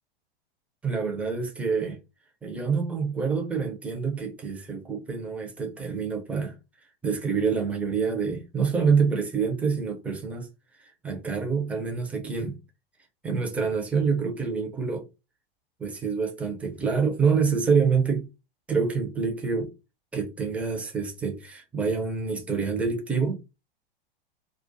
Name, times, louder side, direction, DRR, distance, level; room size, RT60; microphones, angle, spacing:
voice 1, 0.8-2.0 2.4-6.6 7.0-10.5 11.0-12.6 13.2-15.1 15.8-18.3 18.7-19.7 20.1-23.4, right 5 dB, 5° right, 0.5 m, -26 dB
2.3 x 2.3 x 2.5 m
hypercardioid pair, 100°, 29 cm